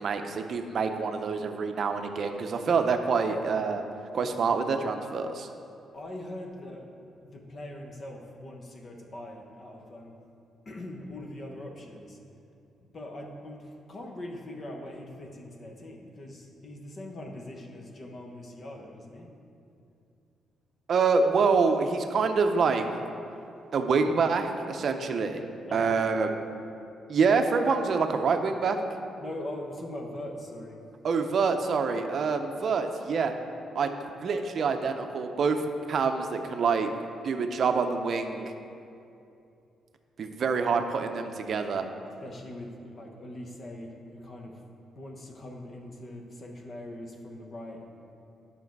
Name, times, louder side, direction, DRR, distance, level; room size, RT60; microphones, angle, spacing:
voice 1, 0.0-3.8 4.1-5.5 20.9-22.8 23.7-25.4 25.7-26.4 27.1-28.8 31.0-33.3 33.7-36.9 37.2-38.5 40.2-41.9, right 5 dB, 55° right, 6 dB, 0.6 m, -26 dB
voice 2, 5.9-6.9 7.2-10.2 10.6-12.2 12.8-19.3 25.7-26.2 29.2-30.9 42.2-44.6 44.9-47.9, left 1 dB, 40° left, 2 dB, 1.2 m, -42 dB
9.4 x 5.9 x 4.7 m, 2.6 s
cardioid pair, 95°, 0 cm